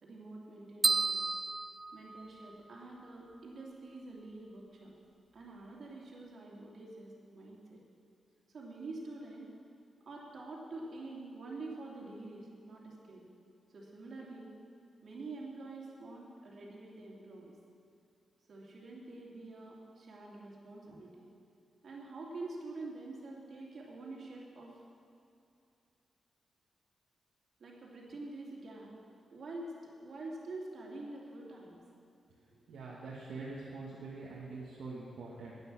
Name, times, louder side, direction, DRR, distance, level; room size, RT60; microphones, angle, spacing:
voice 1, 0.0-1.2 1.9-4.9 5.3-7.8 8.5-9.5 10.1-13.3 13.7-14.6 15.0-17.5 18.5-21.3 21.8-24.7 27.6-28.9 29.3-31.8, right 2 dB, 65° right, -3 dB, 2.7 m, -46 dB
sound 1, 0.8-2.8, right 3 dB, 30° right, 0.5 m, -32 dB
voice 2, 32.5-35.6, right 3 dB, 90° right, -6 dB, 1.7 m, -44 dB
10.0 x 9.1 x 7.5 m, 2.6 s
cardioid pair, 90°, 0 cm